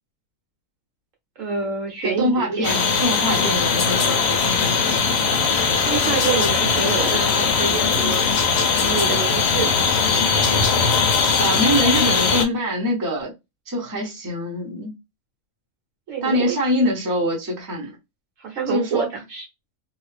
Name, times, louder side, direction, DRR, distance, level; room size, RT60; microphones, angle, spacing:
voice 1, 1.4-2.6 5.8-8.3 8.8-9.8 16.1-16.6 18.4-19.4, right 5 dB, 60° right, 1.2 m, -27 dB
voice 2, 2.0-4.9 11.4-13.3 13.7-14.9 16.2-18.0 18.7-19.1, equal, 15° right, 0.8 m, -24 dB
sound 1, 2.6-12.4, left 5 dB, 60° left, 0.8 m, -20 dB
2.7 x 2.3 x 3.1 m
omnidirectional pair, 1.6 m